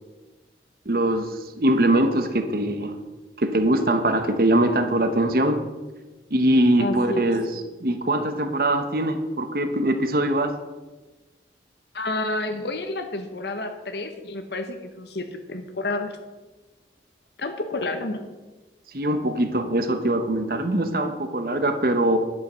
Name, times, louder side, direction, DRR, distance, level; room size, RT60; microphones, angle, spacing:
voice 1, 0.8-2.9 3.4-5.5 6.3-7.5 7.8-10.5 18.9-22.2, right 1 dB, 55° right, 8 dB, 1.1 m, -22 dB
voice 2, 6.8-7.3 11.9-16.2 17.4-18.2, left 2 dB, 70° left, 6 dB, 1.0 m, -30 dB
11.0 x 7.5 x 6.2 m, 1.2 s
head